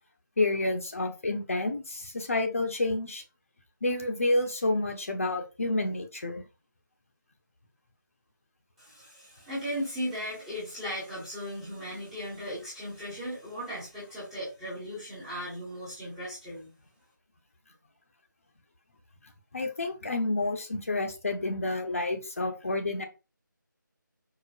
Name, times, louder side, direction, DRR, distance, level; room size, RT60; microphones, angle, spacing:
voice 1, 0.4-3.2 3.8-6.4 19.5-23.0, left 2 dB, 45° left, 4 dB, 0.6 m, -29 dB
voice 2, 8.8-16.7, equal, ahead, -12 dB, 0.6 m, -37 dB
4.7 x 2.0 x 2.5 m, 0.30 s
figure-of-eight pair, 165°, 11 cm